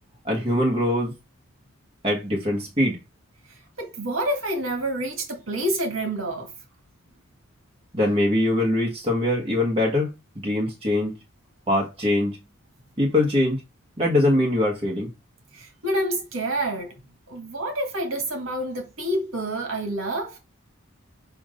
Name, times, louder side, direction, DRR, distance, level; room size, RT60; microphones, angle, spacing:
voice 1, 0.2-1.1 2.0-3.0 7.9-10.1 10.4-11.1 11.7-12.4 13.0-13.6 14.0-15.1, left 1 dB, 25° right, 1.5 m, -22 dB
voice 2, 3.8-6.5 15.5-16.9 17.3-20.4, right 1 dB, 70° right, 1.9 m, -28 dB
7.0 x 2.7 x 5.2 m
head